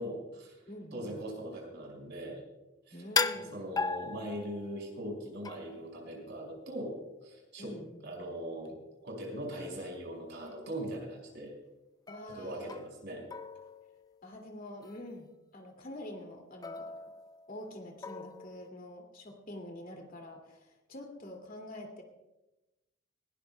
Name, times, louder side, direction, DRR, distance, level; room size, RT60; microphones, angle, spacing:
voice 1, 0.0-0.6 0.9-2.4 2.9-3.0 3.3-8.8 9.0-11.5 12.3-13.2, equal, 65° right, 1 dB, 5.3 m, -40 dB
voice 2, 0.7-1.2 2.9-3.6 7.6-8.1 12.1-12.8 14.2-16.9 17.5-22.0, left 1 dB, 45° left, 2 dB, 2.4 m, -46 dB
sound 1, 3.2-4.8 5.4-5.9 9.8-9.9 10.5-10.8 12.1-13.1 13.3-14.4 14.8-15.1 16.6-17.6 18.0-18.7, left 4 dB, 20° left, 0.4 m, -37 dB
20.0 x 18.0 x 2.2 m, 1.0 s
head